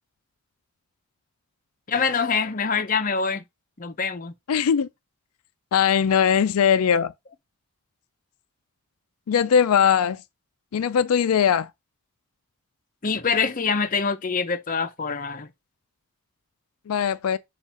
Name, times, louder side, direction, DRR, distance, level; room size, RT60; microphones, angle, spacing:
voice 1, 1.9-3.4 3.8-4.3 13.0-15.5, left 5 dB, 35° left, 0.6 m, -25 dB
voice 2, 4.5-4.9 5.7-7.1 9.3-10.2 10.7-11.7 16.9-17.4, left 7 dB, 80° left, 0.4 m, -20 dB
7.2 x 2.5 x 5.6 m
head